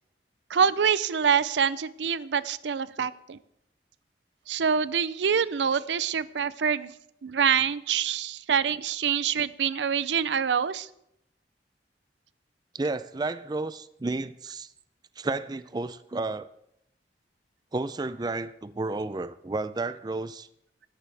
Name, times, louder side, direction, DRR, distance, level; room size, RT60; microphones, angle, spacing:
voice 1, 0.5-3.4 4.5-6.9 7.2-10.9, right 7 dB, 85° right, 17 dB, 0.5 m, -25 dB
voice 2, 12.7-14.7 15.2-16.5 17.7-20.5, right 3 dB, 25° right, 14 dB, 0.4 m, -32 dB
17.5 x 14.0 x 3.4 m, 0.78 s
head